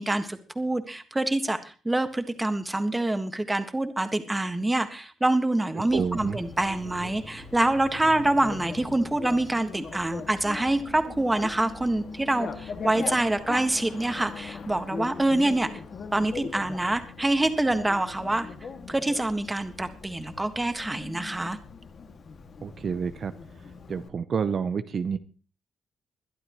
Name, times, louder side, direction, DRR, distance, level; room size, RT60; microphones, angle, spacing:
voice 1, 0.0-15.7 16.1-18.5 18.9-21.6, right 2 dB, 10° right, 8 dB, 1.6 m, -26 dB
Bicycle, 5.9-24.1, left 5 dB, 50° left, 2.1 m, -40 dB
voice 2, 5.9-6.4 22.6-23.3 23.9-25.2, right 6 dB, 45° right, 11 dB, 0.7 m, -28 dB
22.0 x 12.0 x 3.1 m, 0.35 s
cardioid pair, 115°, 0 cm